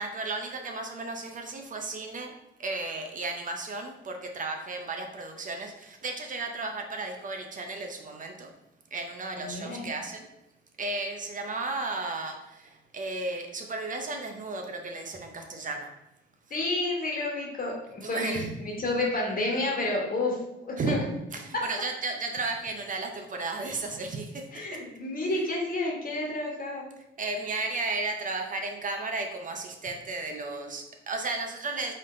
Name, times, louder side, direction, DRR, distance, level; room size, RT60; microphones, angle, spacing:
voice 1, 0.0-8.5 8.9-10.3 10.8-15.9 18.0-18.5 20.8-21.0 21.3-24.8 27.2-31.9, right 3 dB, 40° right, 4 dB, 0.7 m, -34 dB
voice 2, 9.3-9.9 16.5-18.4 18.6-21.0 21.5-21.6 24.5-26.8, left 2 dB, 45° left, -1 dB, 1.5 m, -30 dB
4.1 x 3.4 x 3.8 m, 0.91 s
cardioid pair, 90°, 20 cm